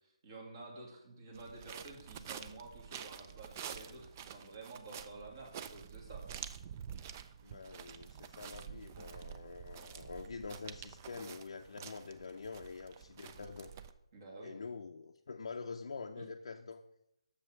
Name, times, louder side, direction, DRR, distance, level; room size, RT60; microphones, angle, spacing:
voice 1, 0.0-6.2 14.1-14.5 16.2-16.3, right 3 dB, 40° right, 1 dB, 2.2 m, -50 dB
sound 1, 1.3-13.9, right 8 dB, 25° right, 0.4 m, -49 dB
voice 2, 7.4-13.7 14.4-16.8, left 4 dB, 65° left, 2 dB, 0.5 m, -46 dB
6.6 x 5.4 x 6.2 m, 0.81 s
figure-of-eight pair, 155°, 3 cm